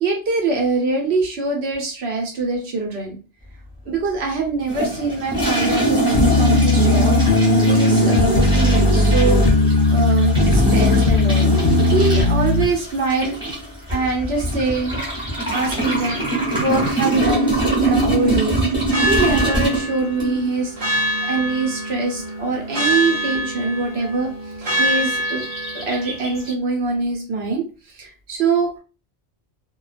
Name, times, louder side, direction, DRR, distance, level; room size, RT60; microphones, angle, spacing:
voice 1, 0.0-3.2 3.9-11.5 11.9-13.4 13.9-15.0 15.5-16.2 16.6-17.5 17.8-18.6 19.1-24.3 24.8-25.4 25.7-27.6 27.9-28.8, right 3 dB, 70° right, 1 dB, 1.0 m, -23 dB
sound 1, 4.7-20.5, right 2 dB, 5° right, 0.9 m, -23 dB
sound 2, 6.1-12.7, left 2 dB, 60° left, 0.4 m, -17 dB
sound 3, 14.3-16.3 18.9-26.5, right 1 dB, 40° right, 0.7 m, -26 dB
2.3 x 2.2 x 2.4 m, 0.34 s
omnidirectional pair, 1.1 m